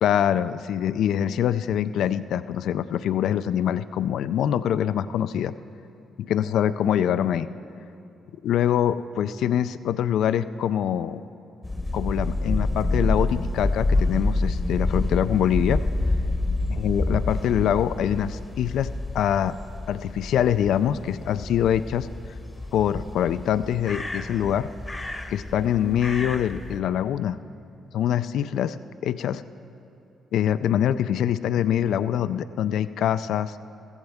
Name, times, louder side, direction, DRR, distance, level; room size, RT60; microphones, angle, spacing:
voice 1, 0.0-5.5 6.2-7.5 8.4-11.2 11.9-15.8 16.8-19.5 19.9-22.1 22.7-24.7 25.3-27.4 27.9-28.8 29.0-29.4 30.3-33.7, left 10 dB, 75° left, 13 dB, 0.3 m, -24 dB
sound 1, 11.6-26.8, left 2 dB, 15° left, 0.8 m, -28 dB
15.5 x 14.5 x 3.5 m, 2.8 s
cardioid pair, 90°, 0 cm